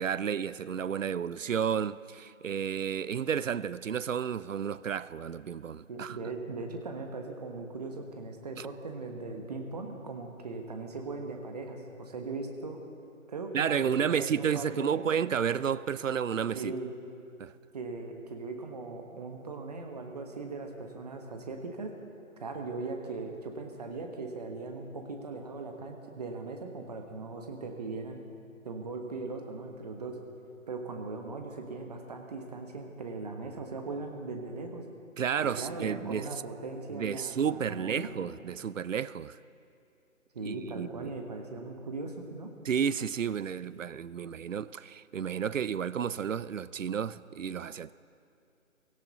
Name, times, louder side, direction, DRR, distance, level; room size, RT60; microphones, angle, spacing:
voice 1, 0.0-6.2 8.6-8.7 13.5-16.7 17.4-17.5 35.2-36.3 36.9-39.4 40.4-41.1 42.6-47.9, right 7 dB, 65° right, 0.5 m, -31 dB
voice 2, 5.9-12.8 13.3-15.1 16.5-16.9 17.7-21.9 22.4-28.2 28.6-30.2 30.7-34.9 35.4-38.1 40.3-42.5, right 3 dB, 30° right, 1.2 m, -39 dB
17.0 x 17.0 x 4.0 m
figure-of-eight pair, 150°, 42 cm